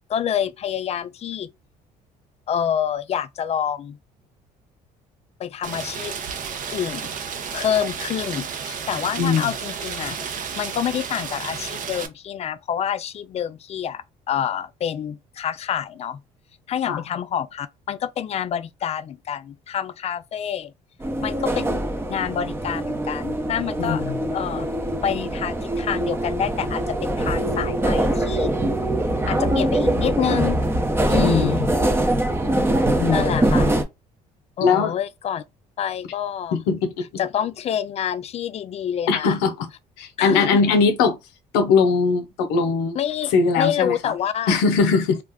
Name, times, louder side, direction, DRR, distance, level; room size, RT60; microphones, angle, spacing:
voice 1, 0.1-1.5 2.5-4.0 5.4-6.2 6.7-7.1 7.5-10.3 10.6-16.2 16.7-20.7 21.2-21.8 22.1-24.0 24.3-24.8 25.0-28.5 29.3-30.6 31.1-31.7 33.1-33.8 34.6-35.4 35.8-36.6 37.2-39.3 40.2-40.8 42.9-44.6, left 9 dB, 40° left, 0.4 m, -27 dB
Rain, 5.6-12.1, right 6 dB, 55° right, 0.6 m, -32 dB
voice 2, 9.2-9.5 16.9-17.0 23.8-24.2 31.2-31.7 33.0-33.4 34.6-34.9 36.5-37.0 39.1-39.7 40.0-41.2 41.5-43.0 43.3-44.1 44.5-45.2, left 5 dB, 90° left, 0.6 m, -20 dB
sound 1, 21.0-33.8, right 1 dB, 15° right, 0.6 m, -23 dB
2.4 x 2.1 x 3.5 m
supercardioid pair, 90°, 16 cm